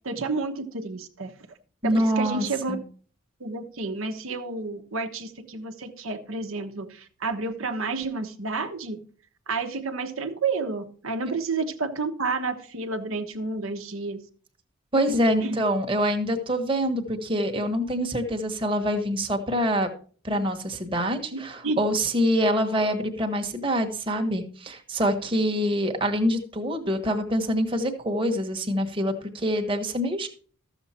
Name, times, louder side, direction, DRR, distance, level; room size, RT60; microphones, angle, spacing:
voice 1, 0.0-1.3 1.8-2.8 3.4-9.0 9.5-14.2 15.1-15.6 21.3-21.8, right 3 dB, 75° right, 5 dB, 1.1 m, -30 dB
voice 2, 1.8-2.8 14.9-19.9 20.2-30.3, equal, 25° right, 4 dB, 1.2 m, -25 dB
13.5 x 7.1 x 4.3 m, 0.44 s
head